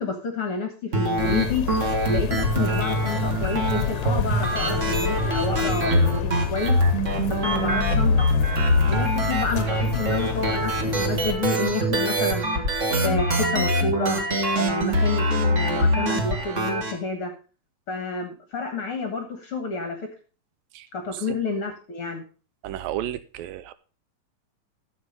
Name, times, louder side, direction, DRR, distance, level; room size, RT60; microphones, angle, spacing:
voice 1, 0.0-1.7 2.1-6.8 7.3-8.3 8.8-12.6 13.0-14.2 14.5-17.3 17.9-20.1 20.9-22.2, left 3 dB, 55° left, 1.7 m, -29 dB
sound 1, 0.9-16.9, right 1 dB, 40° right, 1.0 m, -24 dB
sound 2, 1.2-11.4, left 10 dB, 70° left, 1.9 m, -29 dB
voice 2, 20.7-21.4 22.6-23.7, right 12 dB, 80° right, 2.3 m, -33 dB
11.5 x 7.4 x 5.2 m
omnidirectional pair, 4.2 m